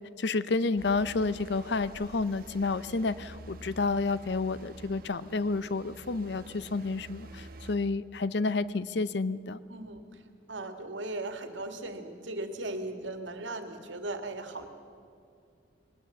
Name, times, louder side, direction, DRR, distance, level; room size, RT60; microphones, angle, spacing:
voice 1, 0.2-9.6, left 3 dB, 65° left, 16 dB, 0.6 m, -30 dB
sound 1, 0.8-7.8, right 2 dB, 50° right, 1.2 m, -48 dB
voice 2, 9.7-14.7, right 2 dB, 85° right, 6 dB, 1.9 m, -38 dB
20.0 x 19.0 x 7.1 m, 2.4 s
head